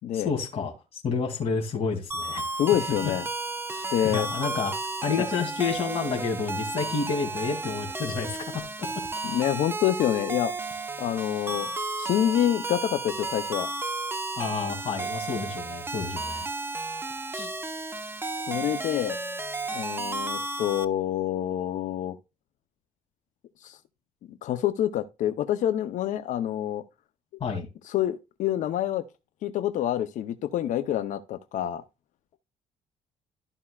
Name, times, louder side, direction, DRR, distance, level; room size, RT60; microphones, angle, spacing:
voice 1, 0.1-2.5 3.7-4.7 5.0-8.4 14.4-16.5 17.3-17.5 27.4-27.7, left 5 dB, 50° left, 2.7 m, -30 dB
sound 1, 2.1-20.9, right 2 dB, 15° right, 0.9 m, -33 dB
voice 2, 2.6-3.3 3.9-4.3 5.2-5.3 9.2-10.5 11.0-11.7 12.0-13.7 18.5-19.2 19.7-22.2 23.6-23.8 24.3-26.8 27.9-29.0 29.4-31.8, left 11 dB, 75° left, 0.7 m, -27 dB
13.5 x 5.4 x 2.4 m
cardioid pair, 95°, 13 cm